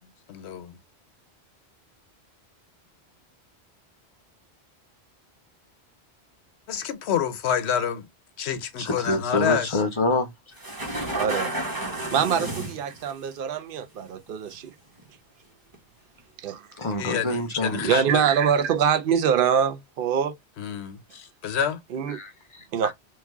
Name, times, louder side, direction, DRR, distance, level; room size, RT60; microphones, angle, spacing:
voice 1, 0.3-0.8 6.7-8.1 8.4-9.8 17.0-18.2 20.6-21.8, left 8 dB, 75° left, 0.9 m, -28 dB
voice 2, 8.8-10.6 16.8-18.0 22.1-22.9, left 2 dB, 35° left, 0.5 m, -27 dB
sound 1, 10.6-13.1 14.0-14.5 15.0-15.1 15.7-15.8, right 1 dB, 20° right, 0.9 m, -31 dB
voice 3, 11.2-11.5 12.1-14.7 16.4-16.7 17.8-20.3 21.9-22.2 22.7-22.9, right 8 dB, 60° right, 0.7 m, -24 dB
3.2 x 2.3 x 3.4 m
omnidirectional pair, 1.1 m